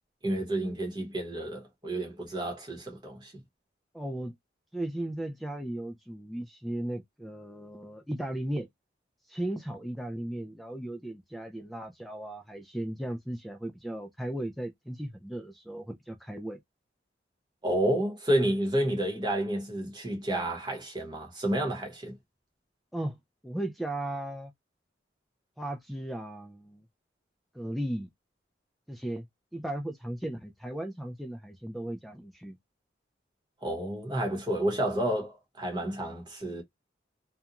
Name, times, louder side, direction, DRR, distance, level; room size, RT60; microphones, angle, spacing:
voice 1, 0.2-3.3 17.6-22.1 33.6-36.6, right 1 dB, 25° right, 0.9 m, -30 dB
voice 2, 3.9-4.3 4.7-8.7 9.3-16.6 22.9-23.2 23.4-24.5 25.6-26.8 27.5-28.1 28.9-29.3 29.5-32.6, right 1 dB, ahead, 0.3 m, -36 dB
2.4 x 2.2 x 2.8 m
head